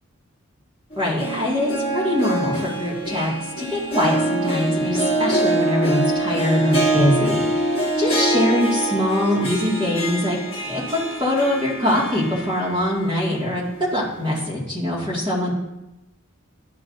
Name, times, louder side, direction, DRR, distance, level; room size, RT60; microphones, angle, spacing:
Harp, 0.9-13.1 13.4-13.5 14.4-14.5, right 1 dB, 25° left, 1.3 m, -24 dB
voice 1, 1.0-3.3 3.6-10.4 10.7-10.8 11.2-15.5, left 1 dB, 20° right, -7 dB, 2.1 m, -23 dB
11.0 x 5.8 x 2.7 m, 0.98 s
head